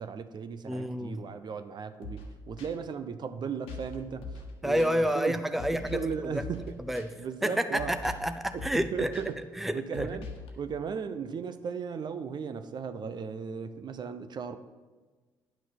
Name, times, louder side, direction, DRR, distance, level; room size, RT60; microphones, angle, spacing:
voice 1, 0.0-5.4 5.7-6.8 7.2-7.9 8.5-9.4 9.7-10.3 10.6-14.6, right 6 dB, 50° right, 10 dB, 0.8 m, -36 dB
voice 2, 0.7-1.2 4.6-6.4 6.9-7.1 7.4-9.1 9.6-10.2, equal, ahead, 10 dB, 0.6 m, -29 dB
sound 1, 2.0-2.3 2.6-2.7 3.7-3.9 4.2-4.5 4.8-4.9 5.6-6.1 6.4-6.7 6.9-7.1 7.8-8.3 8.6-8.8 9.1-9.2 9.9-10.5, left 3 dB, 75° left, 1.4 m, -41 dB
10.5 x 6.2 x 5.9 m, 1.3 s
hypercardioid pair, 55°, 10 cm